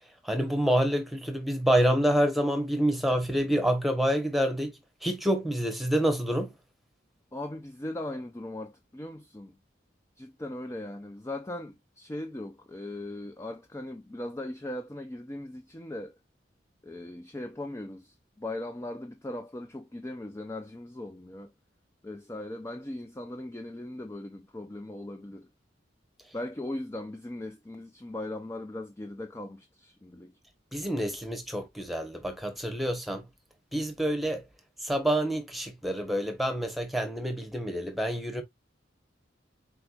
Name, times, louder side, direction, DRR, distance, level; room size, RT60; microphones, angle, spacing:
voice 1, 0.2-6.5 30.7-33.3 33.7-34.4 34.8-38.4, equal, ahead, 1.0 m, -27 dB
voice 2, 7.3-9.5 10.2-16.2 16.8-21.5 22.0-25.5 26.3-30.3, left 1 dB, 15° left, 0.4 m, -39 dB
4.5 x 4.4 x 2.3 m
head